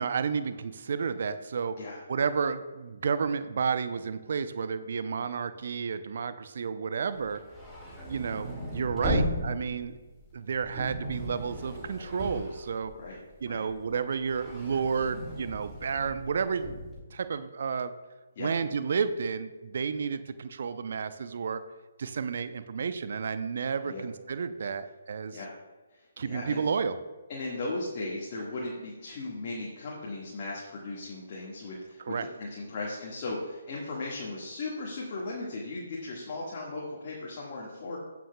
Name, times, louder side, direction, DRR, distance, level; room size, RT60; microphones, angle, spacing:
voice 1, 0.0-1.8 2.1-7.4 8.1-9.9 10.3-12.9 13.4-16.7 17.1-17.9 18.4-21.6 22.0-25.4 26.2-27.0 32.0-32.3, right 6 dB, 55° right, 13 dB, 0.5 m, -31 dB
sound 1, 7.2-13.3 13.7-17.0, equal, ahead, 1.9 m, -36 dB
voice 2, 25.9-26.6 27.3-38.0, left 2 dB, 40° left, -5 dB, 1.7 m, -37 dB
15.5 x 5.9 x 2.3 m, 1.2 s
figure-of-eight pair, 140°, 0 cm